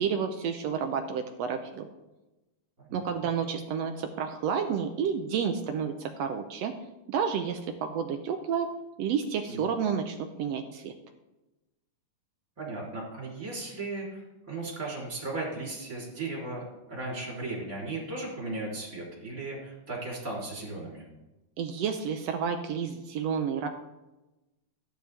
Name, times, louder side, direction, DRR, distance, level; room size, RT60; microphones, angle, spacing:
voice 1, 0.0-1.9 2.9-6.7 7.1-8.7 9.0-10.9 21.6-23.7, right 7 dB, 80° right, 6 dB, 1.5 m, -30 dB
voice 2, 2.8-3.3 9.5-9.6 12.6-21.1, right 2 dB, 25° right, -4 dB, 4.0 m, -36 dB
13.5 x 10.0 x 3.5 m, 1.0 s
omnidirectional pair, 3.8 m